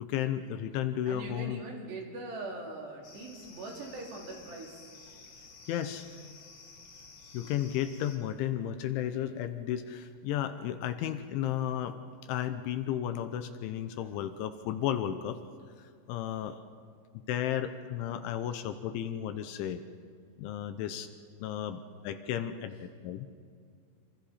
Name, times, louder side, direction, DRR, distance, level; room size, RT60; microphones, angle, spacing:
voice 1, 0.0-1.6 5.7-6.1 7.3-12.0 12.3-15.4 16.1-16.6 17.3-19.8 20.4-21.1 21.4-23.3, left 10 dB, 80° left, 9 dB, 3.1 m, -33 dB
voice 2, 1.1-4.8, right 2 dB, 60° right, 0 dB, 4.8 m, -41 dB
sound 1, 3.0-8.2, left 4 dB, 55° left, 4.2 m, -52 dB
27.0 x 26.0 x 4.2 m, 2.2 s
omnidirectional pair, 5.8 m